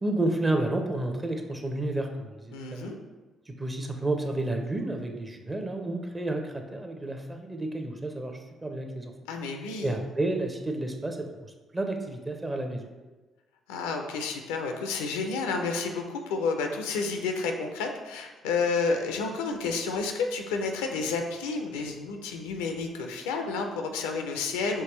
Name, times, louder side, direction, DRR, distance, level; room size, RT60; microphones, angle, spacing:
voice 1, 0.0-2.9 3.5-9.1 9.8-11.3 11.7-12.9, right 2 dB, 25° right, 4 dB, 0.7 m, -31 dB
voice 2, 2.5-3.0 9.3-10.0 13.7-24.8, left 4 dB, 85° left, 4 dB, 0.4 m, -30 dB
4.5 x 3.0 x 3.0 m, 1.2 s
hypercardioid pair, 50°, 0 cm